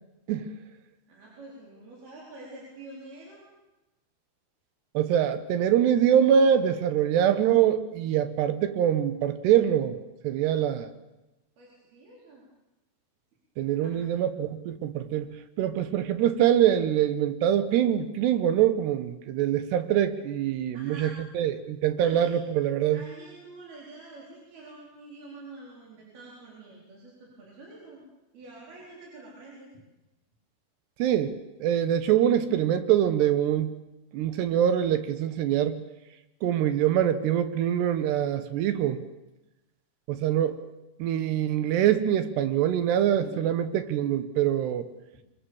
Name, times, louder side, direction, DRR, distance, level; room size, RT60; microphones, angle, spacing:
voice 1, 1.1-3.5 10.5-10.7 11.6-12.5 13.8-14.1 20.7-21.2 22.0-22.4 22.9-28.0 28.3-29.7 43.2-43.3, right 2 dB, 65° right, -4 dB, 6.4 m, -47 dB
voice 2, 4.9-10.0 10.2-10.9 13.6-15.3 15.6-23.0 31.0-31.3 31.6-33.7 34.1-35.8 36.4-39.0 40.1-40.5 41.0-44.9, right 10 dB, 85° right, 11 dB, 3.3 m, -24 dB
25.5 x 23.0 x 7.2 m, 1.0 s
omnidirectional pair, 4.7 m